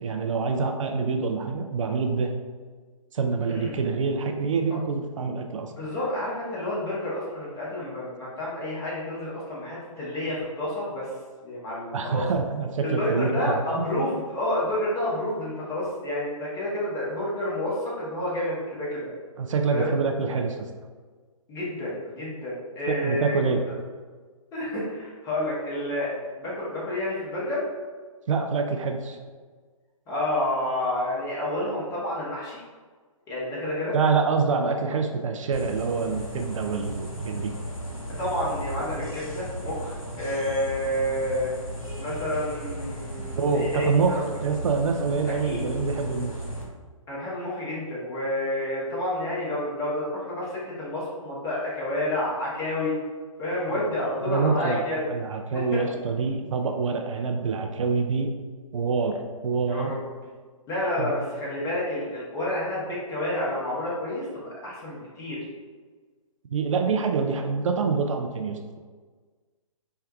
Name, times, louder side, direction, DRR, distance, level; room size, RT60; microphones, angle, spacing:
voice 1, 0.0-2.3 3.1-5.7 11.9-14.0 19.4-20.6 22.9-23.6 28.3-29.2 33.9-37.5 43.4-46.3 53.7-53.8 54.2-54.8 55.1-58.3 58.7-59.9 61.0-61.1 66.5-68.8, right 5 dB, 65° right, 4 dB, 0.4 m, -26 dB
voice 2, 5.7-11.1 11.4-12.2 12.8-19.1 19.7-19.9 21.5-23.4 24.5-26.1 26.4-27.7 30.1-32.6 33.3-33.9 38.2-41.5 42.0-44.2 45.2-45.6 47.1-52.9 53.4-55.0 55.5-55.8 59.7-60.0 60.7-65.4, left 1 dB, 20° left, -6 dB, 0.9 m, -29 dB
sound 1, 35.5-46.6, right 1 dB, 85° left, 1.0 m, -36 dB
4.5 x 2.2 x 2.3 m, 1.5 s
figure-of-eight pair, 130°, 18 cm